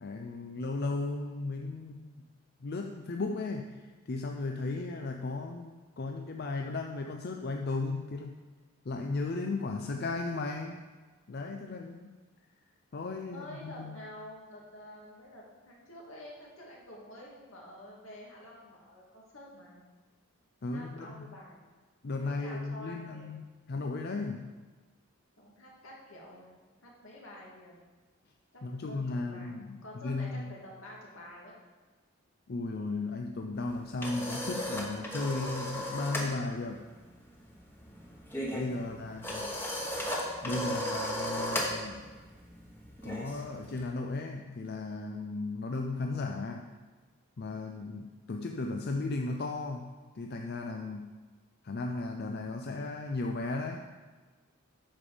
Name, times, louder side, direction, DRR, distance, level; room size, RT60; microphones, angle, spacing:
voice 1, 0.0-2.1 2.6-8.4 8.9-10.8 11.3-12.1 12.9-13.9 20.6-21.2 22.0-24.5 28.6-30.6 32.5-36.8 38.5-39.4 40.4-42.1 43.0-46.7 47.4-51.1 51.6-53.9, left 3 dB, 50° left, 3 dB, 0.5 m, -35 dB
voice 2, 13.2-19.8 20.7-21.6 22.2-23.4 25.4-27.8 28.5-31.5 38.8-39.7, left 1 dB, 75° left, -3 dB, 2.4 m, -49 dB
sound 1, 33.6-36.3 36.6-36.9 37.2-43.8, left 1 dB, 10° left, 1.2 m, -36 dB
8.9 x 7.0 x 5.0 m, 1.3 s
head